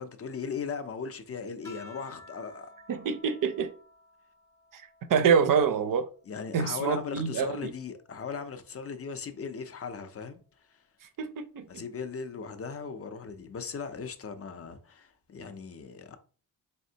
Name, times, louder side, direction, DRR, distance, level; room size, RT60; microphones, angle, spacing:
voice 1, 0.0-2.8 6.3-10.8 11.7-16.2, left 5 dB, 35° left, 0.4 m, -38 dB
sound 1, 1.6-6.4 6.9-8.6 9.8-10.3, left 2 dB, 5° left, 0.7 m, -55 dB
voice 2, 2.9-3.7 4.7-4.8 5.1-6.1 6.5-7.7 11.2-11.8, right 6 dB, 50° right, 0.5 m, -26 dB
4.2 x 3.2 x 2.7 m
wide cardioid pair, 175°, 42 cm